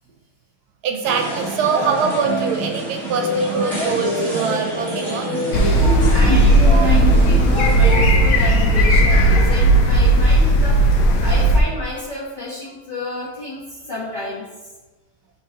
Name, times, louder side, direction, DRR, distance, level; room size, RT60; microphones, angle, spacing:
voice 1, 0.8-5.3, right 6 dB, 75° right, 4 dB, 1.2 m, -23 dB
sound 1, 1.0-8.2, right 1 dB, ahead, 1.6 m, -24 dB
sound 2, 5.5-11.6, right 1 dB, 80° left, 1.3 m, -15 dB
voice 2, 6.1-10.8 11.2-14.5, left 1 dB, 30° left, -8 dB, 1.2 m, -30 dB
9.5 x 3.8 x 2.9 m, 1.1 s
omnidirectional pair, 1.8 m